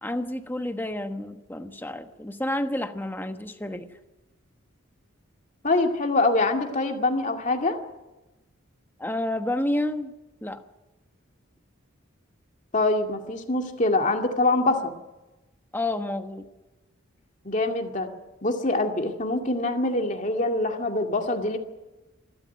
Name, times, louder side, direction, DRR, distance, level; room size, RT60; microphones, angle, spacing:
voice 1, 0.0-4.0 9.0-10.1 10.4-10.6 15.7-16.5, left 1 dB, 10° left, 7 dB, 1.2 m, -30 dB
voice 2, 5.6-7.8 12.7-14.9 17.4-18.1 18.4-21.6, left 2 dB, 35° left, 3 dB, 2.2 m, -24 dB
26.5 x 13.0 x 9.3 m, 1.1 s
head